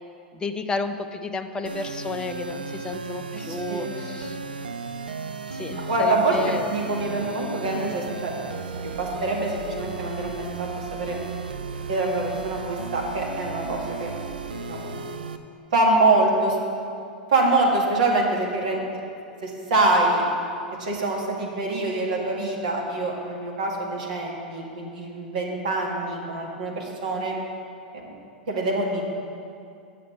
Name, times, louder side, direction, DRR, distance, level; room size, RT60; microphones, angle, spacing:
voice 1, 0.3-4.4 5.5-6.7, left 3 dB, 15° left, 7 dB, 0.5 m, -32 dB
sound 1, 1.6-15.4, right 4 dB, 75° right, 0.5 m, -35 dB
voice 2, 3.3-3.9 5.8-8.3 8.8-11.2 11.9-14.1 14.4-15.0 15.7-16.6 17.3-18.8 19.4-20.2 20.8-27.4 27.9-28.1 28.5-29.1, right 2 dB, 60° right, -1 dB, 1.9 m, -25 dB
8.5 x 6.7 x 6.8 m, 2.6 s
figure-of-eight pair, 95°, 5 cm